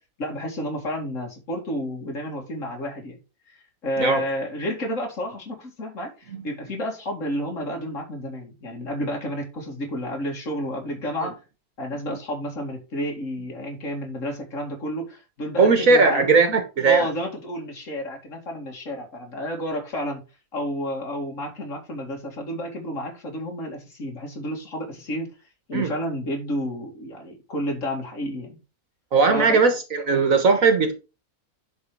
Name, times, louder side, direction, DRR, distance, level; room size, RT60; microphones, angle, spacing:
voice 1, 0.2-3.2 3.5-11.4 11.8-16.3 16.9-20.2 20.5-25.3 25.7-28.6 29.3-29.6, equal, 60° left, 2.7 m, -31 dB
voice 2, 15.6-17.1 25.7-25.9 29.1-30.9, right 4 dB, 65° right, 1.7 m, -18 dB
11.0 x 4.9 x 4.8 m
omnidirectional pair, 1.5 m